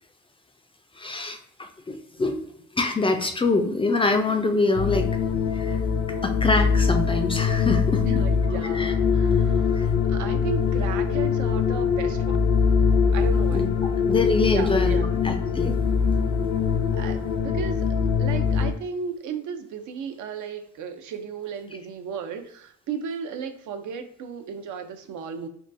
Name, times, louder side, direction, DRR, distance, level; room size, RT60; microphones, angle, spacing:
voice 1, 1.0-2.5 2.8-5.1 5.5-5.8 6.2-8.0 8.7-8.9 9.8-9.9 13.5-13.7 14.1-15.8, left 3 dB, 20° left, 5 dB, 0.3 m, -25 dB
sound 1, 4.7-18.7, left 6 dB, 70° left, 0.6 m, -23 dB
voice 2, 8.0-12.5 13.1-13.7 14.1-14.2 14.5-15.0 16.9-25.5, right 6 dB, 80° right, 7 dB, 0.5 m, -35 dB
3.6 x 2.3 x 2.5 m, 0.67 s
cardioid pair, 90°, 30 cm